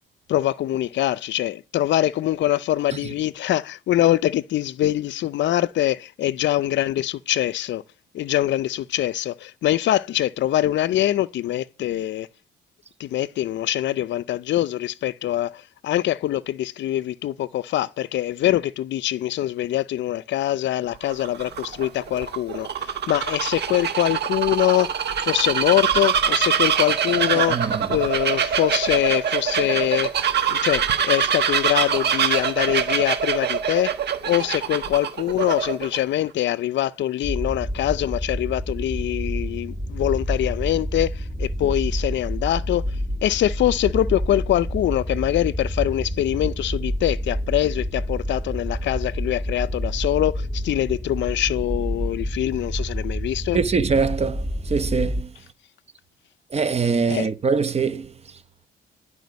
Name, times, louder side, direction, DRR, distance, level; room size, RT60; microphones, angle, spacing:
voice 1, 0.3-7.8 8.1-12.3 13.0-24.9 25.2-27.6 27.9-30.1 30.5-33.9 34.2-42.8 43.2-53.6 57.1-57.3, left 13 dB, 65° left, 0.5 m, -23 dB
Bird vocalization bird call bird song, 20.9-36.0, right 7 dB, 55° right, 1.3 m, -24 dB
voice 2, 27.3-27.9 53.5-55.3 56.5-58.1, right 5 dB, 30° right, 0.9 m, -23 dB
sound 1, 37.2-55.2, equal, 10° right, 1.5 m, -28 dB
11.0 x 4.9 x 5.2 m
cardioid pair, 90°, 20 cm